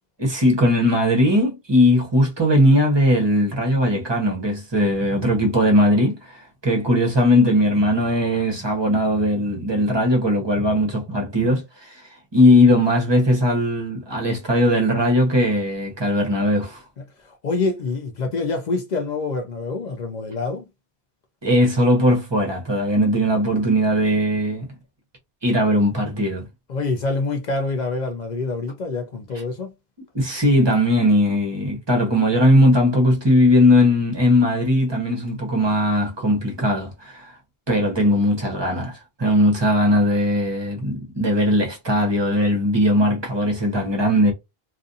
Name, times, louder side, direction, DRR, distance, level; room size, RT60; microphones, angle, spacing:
voice 1, 0.2-12.0 12.3-16.8 21.4-24.7 25.4-26.4 30.1-37.3 37.7-44.3, left 1 dB, 30° right, 0.8 m, -19 dB
voice 2, 17.2-20.7 26.7-29.7, left 3 dB, 55° left, 0.5 m, -26 dB
2.5 x 2.4 x 2.6 m
omnidirectional pair, 1.0 m